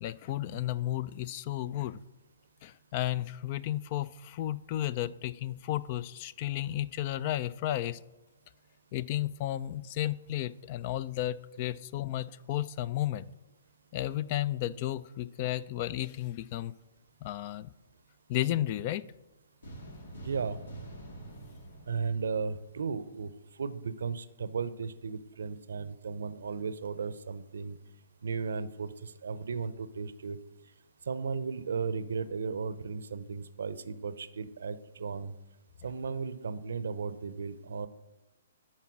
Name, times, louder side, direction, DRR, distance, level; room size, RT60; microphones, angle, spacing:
voice 1, 0.0-2.0 2.6-8.0 8.9-13.3 13.9-16.7 17.2-17.7 18.3-19.0, left 13 dB, 40° left, 19 dB, 0.3 m, -33 dB
sound 1, 19.6-23.1, right 1 dB, 75° left, 2.0 m, -47 dB
voice 2, 20.2-20.6 21.9-23.3 23.6-27.8 28.2-30.4 31.1-35.3 35.8-37.9, right 5 dB, 75° right, 14 dB, 0.6 m, -35 dB
11.0 x 4.3 x 6.0 m, 1.0 s
hypercardioid pair, 130°, 0 cm